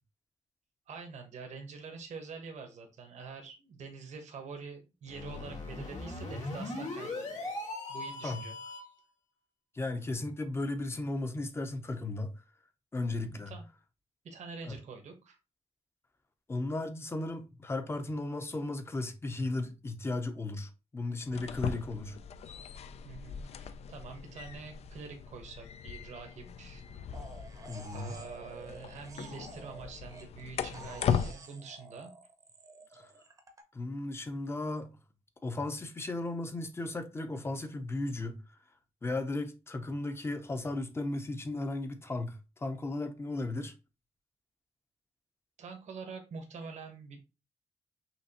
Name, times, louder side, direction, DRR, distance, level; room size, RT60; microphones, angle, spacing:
voice 1, 0.9-7.5 7.9-8.9 13.0-13.7 14.2-15.4 23.0-26.8 27.9-32.1 32.9-33.0 45.6-47.2, right 5 dB, 75° right, 1.2 m, -46 dB
sound 1, 5.1-9.0, left 2 dB, 90° left, 1.7 m, -39 dB
voice 2, 9.7-12.3 12.9-13.5 14.6-14.7 16.5-22.2 27.7-28.2 32.9-33.0 33.7-34.9 35.4-38.4 39.0-43.7, left 2 dB, 20° left, 0.7 m, -35 dB
sound 2, 21.2-31.3, left 7 dB, 60° left, 0.4 m, -38 dB
sound 3, 27.1-30.4 30.7-33.6, right 2 dB, 30° right, 0.8 m, -50 dB
5.8 x 3.0 x 2.9 m
wide cardioid pair, 165°, 12 cm